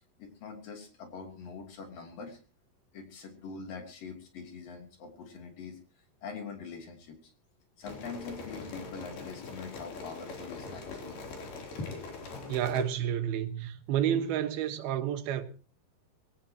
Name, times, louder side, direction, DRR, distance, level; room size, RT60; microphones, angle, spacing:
voice 1, 0.2-2.4 2.9-5.8 6.2-7.3 7.8-11.2 11.7-12.6, left 5 dB, 65° left, 4.8 m, -43 dB
sound 1, 7.8-12.8, left 3 dB, 90° left, 5.4 m, -43 dB
voice 2, 12.5-15.4, right 10 dB, 90° right, 3.3 m, -30 dB
22.0 x 17.5 x 3.0 m
omnidirectional pair, 4.3 m